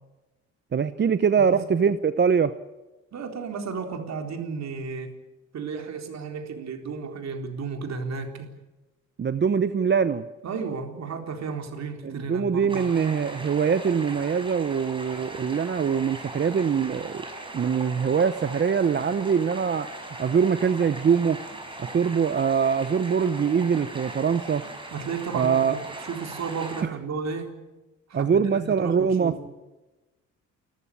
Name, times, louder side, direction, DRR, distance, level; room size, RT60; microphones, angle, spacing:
voice 1, 0.7-2.6 9.2-10.3 12.0-17.2 17.5-19.9 20.2-21.4 21.8-24.7 25.3-25.8 26.8-26.9 28.1-29.4, right 6 dB, 35° right, 12 dB, 0.8 m, -23 dB
voice 2, 3.1-5.2 5.5-8.5 10.4-12.9 24.9-27.6 28.1-29.4, right 5 dB, 60° right, 4 dB, 4.0 m, -33 dB
sound 1, 12.7-26.8, right 2 dB, 15° right, 6.2 m, -39 dB
29.0 x 14.5 x 8.6 m, 1.1 s
cardioid pair, 90°, 30 cm